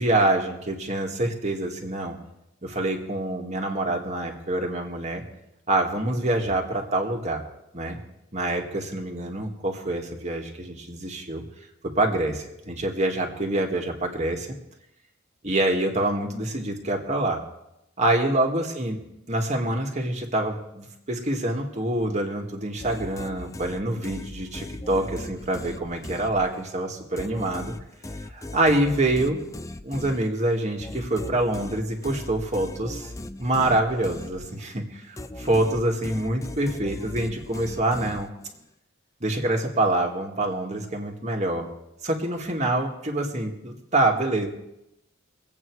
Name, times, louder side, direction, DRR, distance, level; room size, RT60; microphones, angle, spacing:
voice 1, 0.0-2.2 2.6-5.2 5.7-7.4 7.7-8.0 8.3-11.4 11.8-14.5 15.4-17.4 18.0-19.0 19.3-27.7 28.3-29.4 29.8-33.1 33.4-38.3 39.2-41.7 42.0-44.5, right 1 dB, 35° right, 2 dB, 1.9 m, -26 dB
sound 1, 22.8-26.8 27.2-34.8 35.2-38.6, left 1 dB, 15° left, 0.5 m, -38 dB
23.0 x 8.5 x 4.8 m, 0.87 s
head